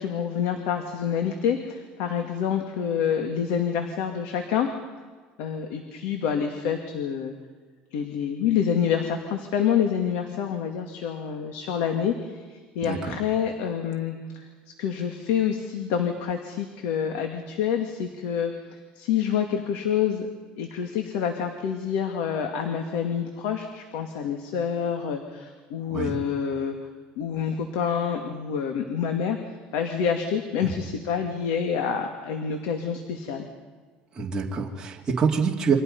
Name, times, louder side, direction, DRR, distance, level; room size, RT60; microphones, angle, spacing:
voice 1, 0.0-4.7 5.4-7.3 7.9-14.4 14.8-20.3 20.6-26.8 27.2-33.5, left 8 dB, 85° left, 5 dB, 2.3 m, -27 dB
voice 2, 12.8-13.1 25.9-26.2 34.2-35.8, right 5 dB, 20° right, -2 dB, 2.5 m, -26 dB
29.5 x 25.0 x 5.5 m, 1.5 s
cardioid pair, 145°, 3 cm